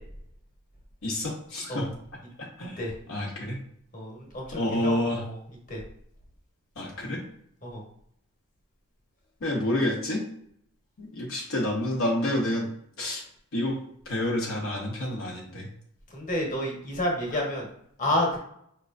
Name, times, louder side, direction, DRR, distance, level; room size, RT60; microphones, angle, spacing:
voice 1, 1.0-1.8 2.6-2.8 3.1-3.6 4.5-5.2 6.8-7.2 9.4-10.2 11.0-12.7 13.0-13.2 13.5-13.8 14.1-15.7, left 1 dB, 65° left, -2 dB, 0.8 m, -28 dB
voice 2, 3.9-5.4 5.7-5.8 7.6-7.8 16.1-17.7 18.0-18.4, left 1 dB, 35° left, -1 dB, 1.1 m, -30 dB
4.9 x 3.0 x 2.5 m, 0.70 s
head